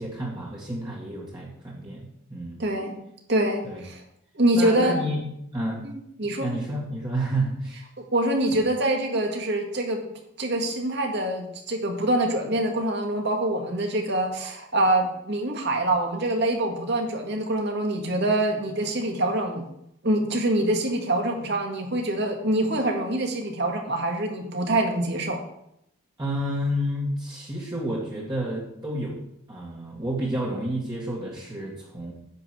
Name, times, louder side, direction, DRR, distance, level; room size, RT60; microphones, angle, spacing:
voice 1, 0.0-2.6 3.6-3.8 4.5-5.3 5.5-5.9 6.2-7.8 26.2-29.2 29.5-32.1, right 1 dB, 20° right, -5 dB, 2.0 m, -30 dB
voice 2, 2.6-3.0 3.3-4.0 4.4-5.0 5.8-5.9 6.2-6.5 8.1-10.0 10.4-19.7 20.0-25.4, right 1 dB, 50° right, 2 dB, 2.0 m, -25 dB
10.5 x 5.2 x 7.7 m, 0.77 s
head